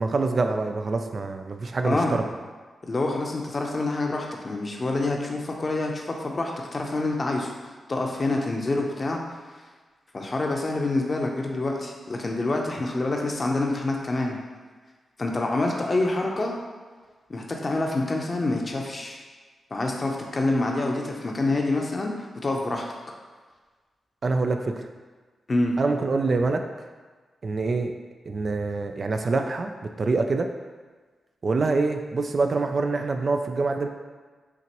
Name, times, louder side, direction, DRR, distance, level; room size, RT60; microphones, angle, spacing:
voice 1, 0.0-2.2 24.2-24.9 25.8-26.6 27.4-27.9 28.3-30.5 31.4-33.9, right 3 dB, 50° right, 5 dB, 0.3 m, -25 dB
voice 2, 1.8-2.2 2.9-7.5 7.9-9.2 10.1-14.4 15.2-16.6 17.3-19.2 19.7-22.8 25.5-25.7, left 2 dB, 40° left, 1 dB, 0.7 m, -27 dB
5.8 x 2.5 x 3.0 m, 1.4 s
cardioid pair, 65°, 0 cm